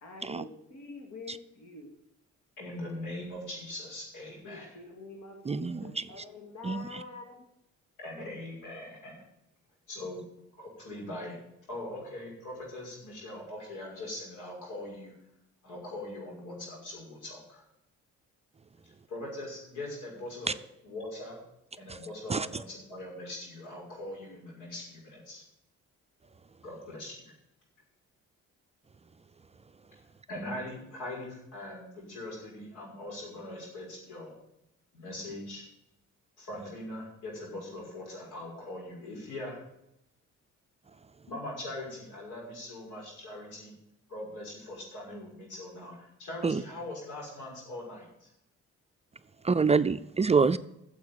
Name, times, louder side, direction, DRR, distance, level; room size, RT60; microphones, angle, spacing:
voice 1, 0.0-1.9 4.4-7.5, left 3 dB, 65° left, 2.4 m, -46 dB
voice 2, 2.6-4.8 8.0-9.2 9.9-10.2 10.6-11.4 11.7-15.2 15.6-17.6 19.1-20.5 20.8-21.4 21.8-25.4 26.6-27.2 30.3-34.4 34.9-35.6 36.4-39.6 41.3-43.7 44.1-48.3, left 1 dB, 90° left, 5.8 m, -41 dB
voice 3, 5.5-6.0 6.6-7.0 22.3-22.5 46.4-46.6 49.5-50.6, right 5 dB, 20° right, 0.4 m, -26 dB
9.5 x 7.4 x 8.6 m
cardioid pair, 90°, 30 cm